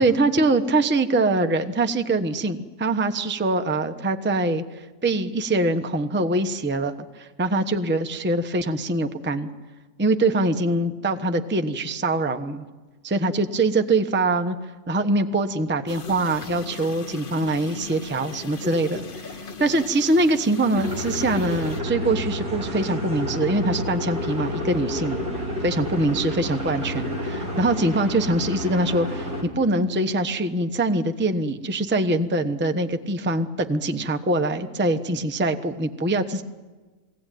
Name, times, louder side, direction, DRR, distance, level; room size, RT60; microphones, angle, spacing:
voice 1, 0.0-9.5 10.0-12.6 13.0-14.6 14.9-25.2 25.6-36.4, right 2 dB, 10° right, 7 dB, 0.7 m, -23 dB
sound 1, 15.9-21.8, left 3 dB, 35° left, 1.1 m, -38 dB
sound 2, 20.7-29.4, left 1 dB, 50° right, 5.1 m, -30 dB
22.5 x 18.0 x 9.2 m, 1.3 s
omnidirectional pair, 2.0 m